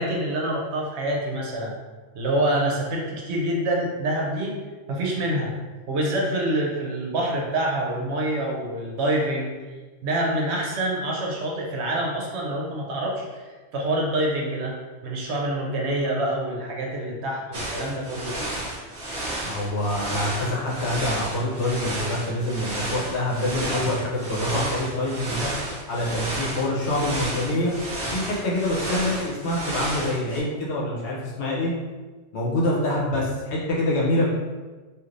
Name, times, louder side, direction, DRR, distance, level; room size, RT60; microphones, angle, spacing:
voice 1, 0.0-1.7 2.1-4.6 4.9-5.5 5.9-9.5 10.0-14.7 15.0-18.3, right 1 dB, 70° right, -2 dB, 0.9 m, -26 dB
sound 1, 17.5-30.4, right 1 dB, 45° right, 1.0 m, -32 dB
voice 2, 19.4-25.5 25.9-27.7 28.1-31.7 32.3-34.3, left 1 dB, 70° left, -4 dB, 1.0 m, -26 dB
3.1 x 2.5 x 2.5 m, 1.3 s
omnidirectional pair, 1.2 m